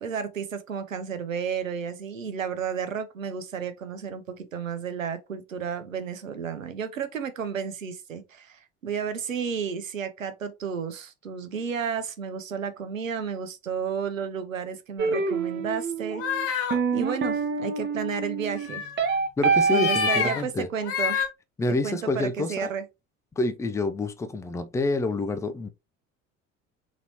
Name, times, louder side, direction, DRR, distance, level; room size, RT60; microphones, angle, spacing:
voice 1, 0.0-16.5 16.9-18.8 19.7-21.2 21.8-22.8, right 7 dB, 80° right, 0.7 m, -32 dB
sound 1, 15.0-20.3, right 5 dB, 30° right, 0.9 m, -26 dB
sound 2, 16.1-16.8 18.6-19.1 19.6-20.4 20.8-21.3, left 7 dB, 35° left, 1.0 m, -28 dB
voice 2, 19.4-20.7 21.6-22.7 23.4-25.7, left 3 dB, 10° left, 0.4 m, -27 dB
4.0 x 4.0 x 2.8 m
figure-of-eight pair, 60°, 39 cm